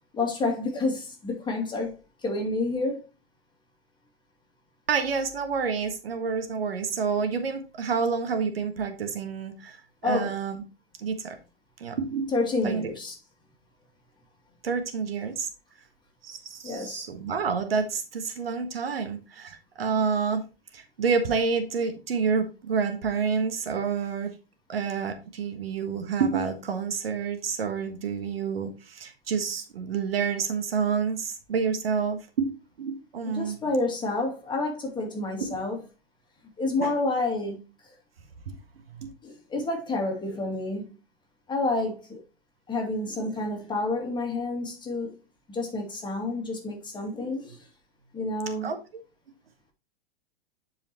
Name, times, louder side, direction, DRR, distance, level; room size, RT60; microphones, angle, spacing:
voice 1, 0.1-1.9 2.2-3.0 10.0-10.3 12.3-13.2 16.6-17.0 33.3-35.8 36.6-37.6 39.2-40.9 41.5-42.2 42.7-45.1 45.5-47.6 48.1-48.7, left 2 dB, 15° left, 2.3 m, -29 dB
voice 2, 4.9-9.8 10.0-10.6 11.0-11.4 11.8-12.3 12.6-12.9 14.6-15.5 16.2-20.4 20.7-24.3 24.7-32.5 32.8-33.6 35.5-35.6 36.8-36.9 38.5-38.6 38.9-39.1 48.6-48.8, right 5 dB, 75° right, 1.4 m, -28 dB
10.5 x 4.8 x 3.0 m
hypercardioid pair, 100°, 30 cm